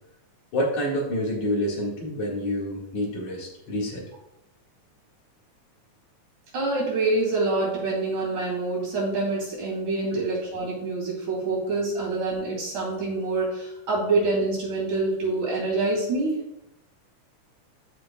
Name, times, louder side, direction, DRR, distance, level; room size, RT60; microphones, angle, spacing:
voice 1, 0.5-4.0 10.1-10.2, left 1 dB, 80° left, -4 dB, 3.5 m, -28 dB
voice 2, 6.5-16.4, right 3 dB, 80° right, -5 dB, 4.6 m, -26 dB
14.0 x 4.8 x 2.4 m, 0.85 s
omnidirectional pair, 3.4 m